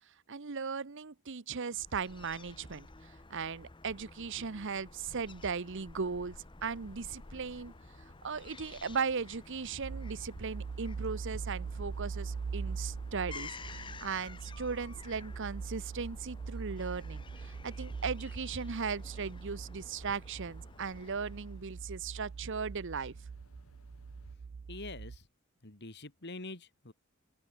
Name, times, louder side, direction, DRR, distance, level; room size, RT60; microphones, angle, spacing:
voice 1, 0.3-7.7 8.2-23.1, right 5 dB, 60° right, 0.9 m, -38 dB
Fowl / Gull seagull, 1.8-21.7, left 3 dB, 25° left, 1.0 m, -51 dB
sound 1, 6.7-24.4, left 1 dB, 80° left, 3.7 m, -62 dB
sound 2, 9.8-25.2, right 5 dB, 40° right, 0.3 m, -42 dB
voice 2, 24.7-25.3 25.6-26.9, left 2 dB, 50° left, 2.4 m, -45 dB
open air
head